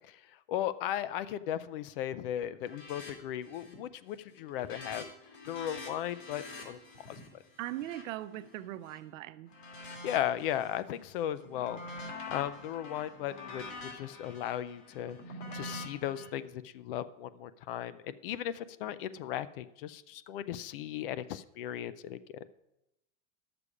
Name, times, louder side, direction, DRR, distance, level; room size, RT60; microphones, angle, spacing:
voice 1, 0.5-5.1 5.5-6.8 7.1-7.2 10.0-11.8 12.3-15.2 15.5-22.2, left 11 dB, 50° left, 0.4 m, -36 dB
sound 1, 2.6-3.1 3.4-3.8 4.2-9.0 9.5-10.8 11.2-16.3, left 2 dB, 85° left, 2.5 m, -46 dB
voice 2, 7.6-9.5, right 14 dB, 85° right, 0.6 m, -40 dB
11.0 x 6.8 x 4.8 m
supercardioid pair, 165°, 37 cm